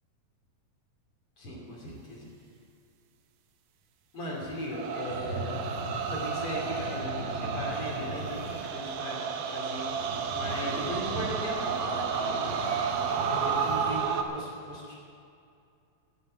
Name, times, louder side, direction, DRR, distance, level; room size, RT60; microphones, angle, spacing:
voice 1, 1.4-2.3 4.1-12.6 13.1-15.0, equal, 40° left, -3 dB, 3.1 m, -38 dB
sound 1, 4.7-14.2, right 6 dB, 75° right, 2.3 m, -32 dB
sound 2, 5.1-14.0, right 1 dB, 20° left, 4.4 m, -39 dB
12.0 x 9.2 x 8.8 m, 2.5 s
omnidirectional pair, 4.2 m